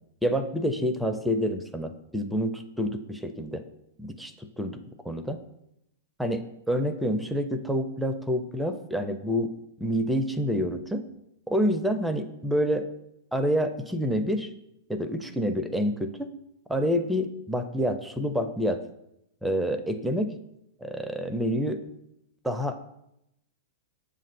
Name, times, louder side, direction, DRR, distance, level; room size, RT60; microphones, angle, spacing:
voice 1, 0.2-3.6 4.0-4.3 4.6-4.8 5.0-5.4 6.2-9.5 9.8-11.0 11.5-12.9 13.3-14.5 14.9-16.3 16.7-18.8 19.4-20.3 20.8-21.8 22.4-22.8, equal, 5° right, 8 dB, 0.4 m, -27 dB
7.3 x 2.5 x 5.4 m, 0.83 s
hypercardioid pair, 115°, 0 cm